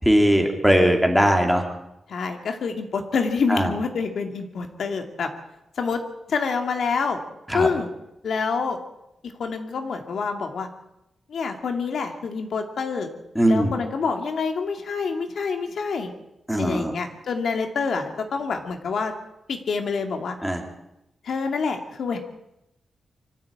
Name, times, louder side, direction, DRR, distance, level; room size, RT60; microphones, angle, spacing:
voice 1, 0.0-1.6 3.5-3.7 7.5-7.7 13.3-13.7 16.5-16.9 20.4-20.6, equal, ahead, 2 dB, 2.9 m, -19 dB
voice 2, 2.1-5.3 5.8-6.0 6.3-7.2 7.5-7.9 8.2-8.8 9.4-10.7 11.3-13.1 13.5-16.1 16.6-19.1 19.5-20.4 21.2-22.2, left 5 dB, 65° left, 5 dB, 2.5 m, -27 dB
25.0 x 14.5 x 8.7 m, 0.88 s
wide cardioid pair, 170°, 0 cm